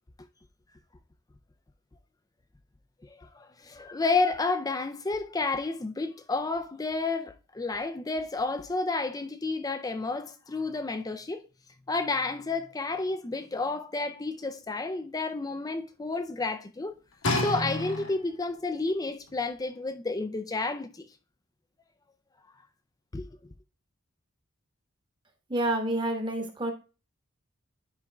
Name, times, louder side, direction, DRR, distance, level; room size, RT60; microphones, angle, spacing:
voice 1, 3.0-11.4 11.9-17.0 17.4-21.1 23.1-23.4, left 3 dB, 15° left, 0.4 m, -31 dB
sound 1, 17.2-18.5 19.3-19.4, left 2 dB, 85° left, 1.6 m, -30 dB
voice 2, 25.5-26.7, right 1 dB, 20° right, 1.2 m, -28 dB
10.5 x 5.0 x 2.3 m
head